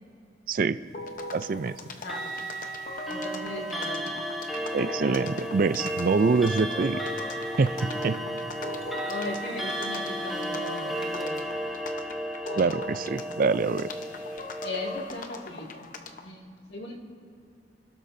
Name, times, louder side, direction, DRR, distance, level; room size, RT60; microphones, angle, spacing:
voice 1, 0.5-0.8 1.3-1.8 4.7-7.0 7.6-8.2 12.6-13.9, right 4 dB, 50° right, 14 dB, 0.4 m, -25 dB
sound 1, 0.9-16.3, left 2 dB, 50° left, 0.9 m, -41 dB
voice 2, 2.0-2.3 3.1-4.2 9.1-11.4 12.4-12.8 14.6-15.9 16.2-16.9, left 2 dB, 65° left, -1 dB, 2.1 m, -38 dB
Clock, 2.0-15.1, equal, ahead, 1.0 m, -34 dB
29.5 x 12.5 x 2.7 m, 2.4 s
head